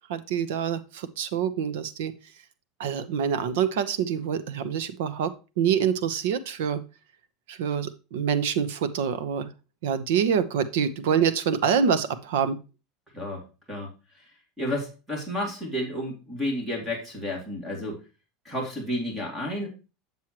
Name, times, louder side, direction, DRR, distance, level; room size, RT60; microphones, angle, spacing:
voice 1, 0.1-2.1 2.8-6.8 7.5-9.5 9.8-12.6, right 7 dB, 80° right, 10 dB, 0.9 m, -26 dB
voice 2, 14.6-18.0 18.4-19.7, left 1 dB, 10° right, 0 dB, 2.2 m, -31 dB
7.5 x 7.3 x 2.9 m, 0.30 s
supercardioid pair, 170°, 0 cm